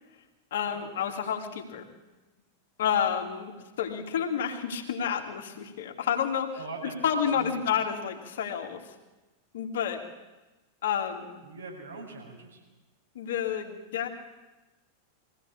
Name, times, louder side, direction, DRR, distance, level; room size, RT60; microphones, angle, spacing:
voice 1, 0.5-1.8 2.8-6.6 7.0-8.8 9.5-10.1 10.8-11.4 13.1-14.1, left 8 dB, 60° left, 3 dB, 2.8 m, -30 dB
voice 2, 6.5-7.6 11.4-12.6, right 3 dB, 75° right, -2 dB, 7.1 m, -42 dB
24.0 x 16.5 x 8.7 m, 1.1 s
figure-of-eight pair, 90°, 0 cm